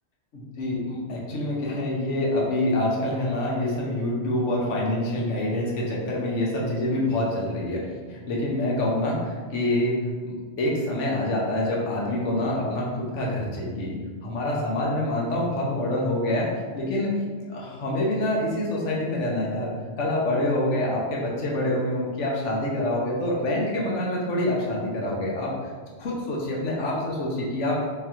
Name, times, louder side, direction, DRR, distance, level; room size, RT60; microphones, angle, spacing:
voice 1, 0.3-25.7 26.0-27.8, left 1 dB, 90° left, -3 dB, 1.2 m, -26 dB
3.8 x 3.6 x 2.9 m, 1.5 s
omnidirectional pair, 1.2 m